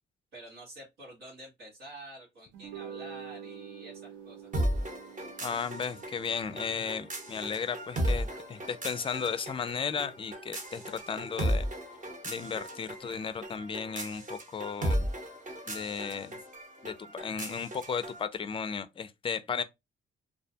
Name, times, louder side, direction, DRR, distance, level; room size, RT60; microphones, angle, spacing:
voice 1, 0.3-4.5 8.1-8.2, right 1 dB, 85° right, 1.1 m, -48 dB
sound 1, 2.5-9.1, right 8 dB, 70° right, 0.5 m, -48 dB
sound 2, 3.4-13.2, right 1 dB, 5° right, 0.9 m, -57 dB
sound 3, 4.5-18.2, right 1 dB, 40° right, 0.9 m, -36 dB
voice 2, 5.4-11.7 12.2-15.1 15.7-16.4 16.8-19.6, left 6 dB, 25° left, 0.4 m, -35 dB
2.3 x 2.1 x 2.6 m
cardioid pair, 90°, 20 cm